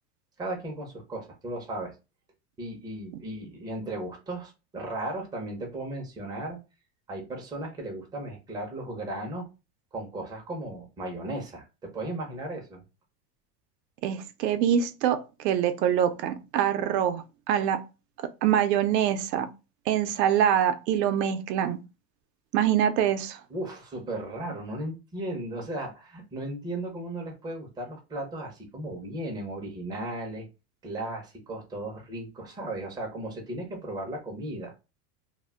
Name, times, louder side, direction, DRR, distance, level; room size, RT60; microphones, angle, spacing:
voice 1, 0.4-1.9 2.6-6.6 7.1-9.5 9.9-12.8 23.5-30.5 30.8-34.7, right 1 dB, 10° right, 0.4 m, -36 dB
voice 2, 14.0-17.8 18.4-19.5 19.9-21.8 22.5-23.4, right 9 dB, 90° right, 0.6 m, -25 dB
2.1 x 2.1 x 3.4 m
supercardioid pair, 125°, 48 cm